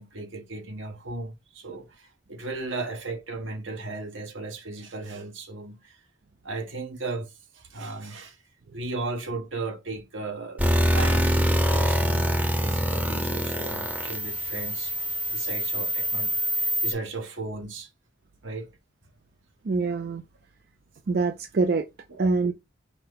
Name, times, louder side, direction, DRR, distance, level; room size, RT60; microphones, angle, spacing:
voice 1, 0.0-6.0 6.4-8.4 8.7-14.9 15.3-17.9 18.4-18.7 22.1-22.3, right 3 dB, 80° right, 1.3 m, -36 dB
sound 1, 10.6-16.9, equal, 10° right, 0.7 m, -25 dB
voice 2, 19.6-20.2 21.1-21.8 22.2-22.5, right 4 dB, 50° right, 0.4 m, -24 dB
5.9 x 2.1 x 3.9 m
head